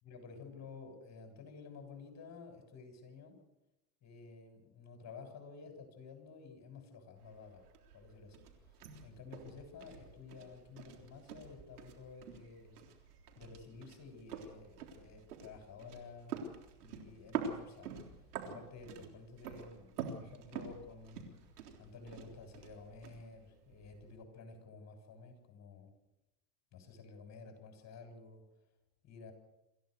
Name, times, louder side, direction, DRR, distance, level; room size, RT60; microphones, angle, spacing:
voice 1, 0.0-3.4 4.0-7.6 7.9-8.4 9.0-12.8 13.4-16.4 16.8-17.9 18.5-21.3 21.8-25.9 26.7-28.4 29.0-29.3, left 4 dB, 35° left, 5 dB, 7.8 m, -52 dB
sound 1, 7.2-24.2, right 6 dB, 85° right, 3.7 m, -47 dB
26.5 x 15.0 x 6.8 m, 0.97 s
hypercardioid pair, 100°, 45 cm